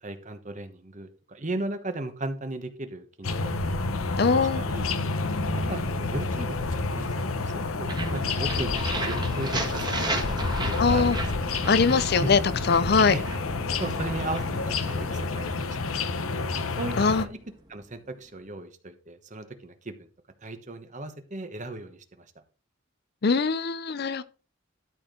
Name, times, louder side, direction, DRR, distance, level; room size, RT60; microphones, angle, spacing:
voice 1, 0.0-3.5 4.3-4.9 5.7-11.1 12.2-12.3 13.1-13.2 13.8-15.8 16.8-17.4 17.7-20.1 20.4-22.2, right 2 dB, 35° right, 1.1 m, -36 dB
sound 1, 3.2-17.2, left 3 dB, 85° left, 0.8 m, -29 dB
voice 2, 4.2-4.6 10.8-11.2 11.7-12.4 12.7-13.2 17.0-17.2 23.2-24.2, left 5 dB, 50° left, 0.5 m, -22 dB
sound 2, 7.9-17.7, right 2 dB, 20° right, 1.6 m, -36 dB
12.5 x 4.3 x 5.2 m
head